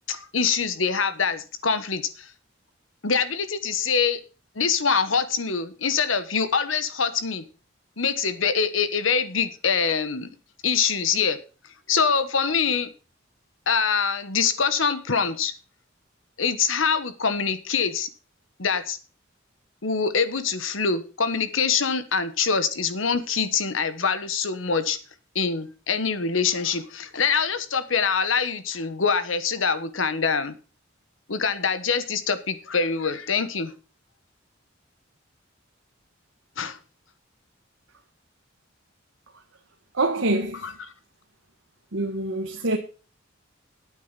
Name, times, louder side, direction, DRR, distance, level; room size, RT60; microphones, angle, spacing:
voice 1, 0.1-2.3 3.0-4.2 4.5-7.4 8.0-10.3 10.6-11.4 11.9-12.9 13.7-15.5 16.4-18.1 18.6-19.0 19.8-25.0 25.3-30.5 31.3-33.7 36.6-36.8 40.6-40.7, left 5 dB, 80° left, 1.3 m, -24 dB
voice 2, 39.9-40.7 41.9-42.8, right 2 dB, 85° right, 1.6 m, -25 dB
9.4 x 8.6 x 5.7 m
head